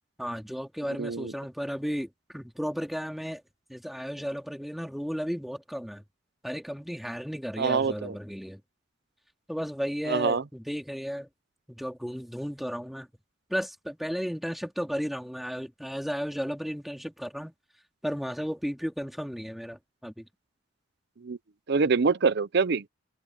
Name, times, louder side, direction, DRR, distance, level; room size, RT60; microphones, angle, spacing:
voice 1, 0.2-3.4 3.7-6.0 6.4-8.6 9.5-11.3 11.7-13.1 13.5-17.5 18.0-20.3, equal, ahead, 2.6 m, -34 dB
voice 2, 1.0-1.3 7.6-8.1 10.1-10.4 21.2-21.4 21.7-22.8, right 5 dB, 55° right, 0.6 m, -25 dB
head